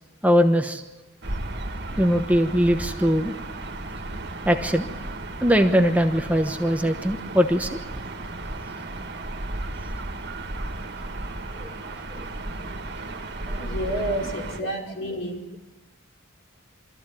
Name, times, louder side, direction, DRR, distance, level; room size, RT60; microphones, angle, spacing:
voice 1, 0.2-0.8 1.9-3.3 4.4-4.9 5.4-7.8 11.5-12.3 13.5-13.7, equal, 5° right, 5 dB, 1.1 m, -21 dB
Gull seagull / Ocean, 1.2-14.6, right 2 dB, 55° right, 2.0 m, -34 dB
voice 2, 13.6-15.4, right 1 dB, 70° left, 0 dB, 5.4 m, -29 dB
25.5 x 14.5 x 9.8 m, 1.1 s
head